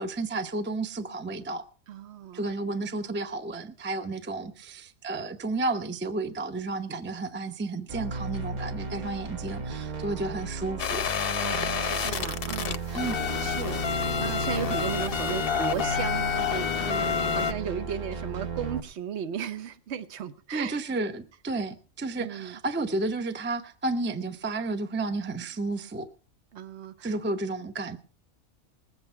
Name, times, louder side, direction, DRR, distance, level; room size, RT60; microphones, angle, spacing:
voice 1, 0.0-1.6 2.3-11.1 12.9-13.2 20.5-26.1 27.0-28.0, right 2 dB, 10° right, 0.6 m, -32 dB
voice 2, 1.9-2.5 11.4-20.8 22.2-22.6 26.5-27.1, right 8 dB, 55° right, 1.1 m, -36 dB
sound 1, 7.9-18.8, right 4 dB, 35° right, 1.0 m, -35 dB
sound 2, 10.8-17.5, left 7 dB, 50° left, 0.8 m, -29 dB
20.5 x 8.0 x 4.4 m
omnidirectional pair, 1.5 m